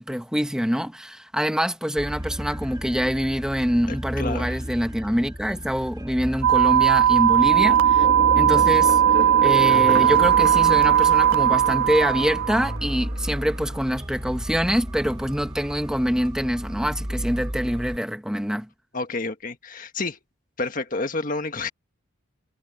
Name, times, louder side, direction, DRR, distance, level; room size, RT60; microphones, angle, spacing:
voice 1, 0.0-8.1 8.4-9.0 9.4-18.7, equal, 5° right, 1.3 m, -25 dB
sound 1, 2.0-18.0, equal, 20° right, 1.6 m, -34 dB
voice 2, 3.9-4.6 18.9-20.2 20.6-21.7, left 3 dB, 40° left, 1.8 m, -29 dB
sound 2, 6.4-12.8, right 10 dB, 80° right, 0.5 m, -18 dB
sound 3, 7.3-13.8, right 2 dB, 45° right, 1.4 m, -31 dB
head